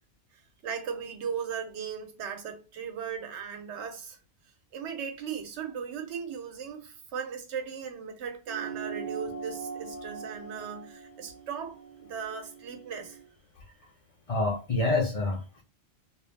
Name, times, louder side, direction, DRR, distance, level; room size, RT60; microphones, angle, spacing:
voice 1, 0.6-4.2 4.7-13.2, right 7 dB, 90° right, 0.9 m, -37 dB
sound 1, 8.5-13.3, right 6 dB, 55° right, 0.7 m, -41 dB
voice 2, 14.3-15.6, left 2 dB, 45° left, 0.5 m, -27 dB
2.3 x 2.0 x 3.1 m
omnidirectional pair, 1.1 m